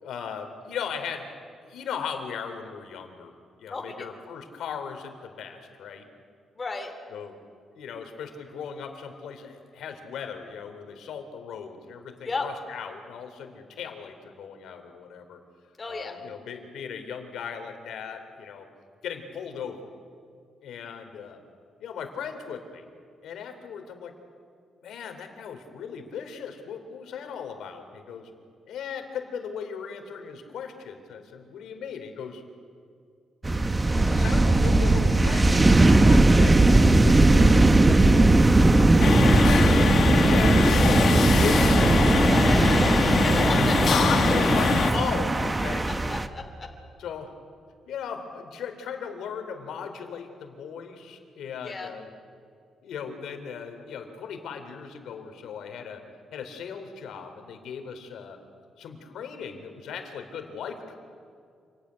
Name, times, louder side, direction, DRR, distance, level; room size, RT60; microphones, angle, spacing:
voice 1, 0.0-1.3 1.6-3.3 3.6-6.1 7.1-7.4 7.7-15.4 15.9-18.7 19.0-19.9 20.6-21.4 21.8-22.8 23.2-24.1 24.8-28.3 28.7-32.4 33.9-39.8 40.2-43.0 43.4-43.5 43.9-45.8 47.0-47.3 47.9-52.1 52.8-56.0 56.3-58.4 58.8-61.0, left 7 dB, 80° left, 6 dB, 3.4 m, -37 dB
voice 2, 3.7-4.1 6.5-6.9 12.2-12.5 15.8-16.1 43.1-44.1 44.4-44.5 45.9-46.7 51.6-51.9, left 3 dB, 25° left, 4 dB, 3.1 m, -34 dB
sound 1, 33.4-46.3, right 2 dB, 15° right, 0.9 m, -19 dB
sound 2, 39.0-44.9, left 6 dB, 55° left, 1.4 m, -24 dB
27.5 x 19.5 x 9.8 m, 2.3 s
cardioid pair, 150°, 0 cm